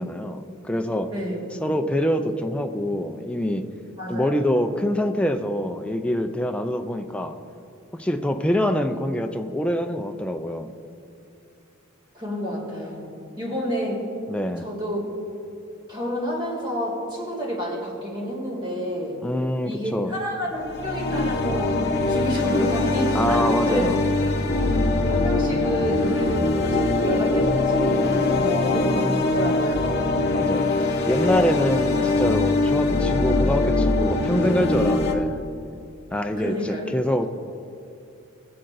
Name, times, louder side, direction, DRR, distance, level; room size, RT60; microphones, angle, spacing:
voice 1, 0.0-1.1 1.6-3.7 4.1-7.4 7.9-10.7 14.3-14.7 19.2-20.2 23.1-24.0 30.3-30.7 31.1-35.4 36.1-37.3, equal, 5° left, 6 dB, 0.4 m, -25 dB
voice 2, 4.0-4.3 12.1-13.0 13.4-14.1 14.6-15.0 15.9-19.2 19.6-21.8 22.1-23.8 25.1-30.2 32.6-32.7 36.4-36.8, equal, 25° right, -3 dB, 2.4 m, -29 dB
sound 1, 20.6-35.1, left 2 dB, 50° left, 0.8 m, -22 dB
18.0 x 7.7 x 2.6 m, 2.7 s
head